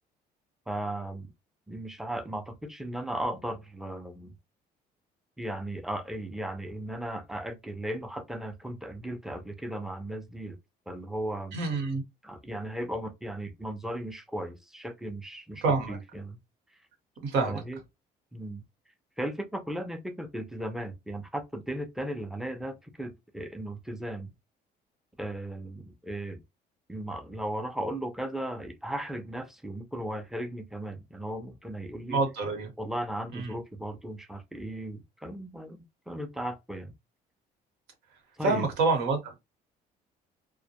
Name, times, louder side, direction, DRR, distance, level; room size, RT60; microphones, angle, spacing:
voice 1, 0.7-1.3 1.7-4.3 5.4-10.6 10.9-11.6 12.2-16.4 17.4-17.8 18.3-18.6 19.2-24.3 25.2-26.4 26.9-32.2 32.8-36.9 38.4-38.7, right 1 dB, ahead, 0.4 m, -36 dB
voice 2, 11.5-12.0 15.6-16.0 17.2-17.6 32.1-32.7 33.3-33.5 38.4-39.4, right 3 dB, 90° right, 1.0 m, -27 dB
2.2 x 2.0 x 2.7 m
cardioid pair, 110°, 17 cm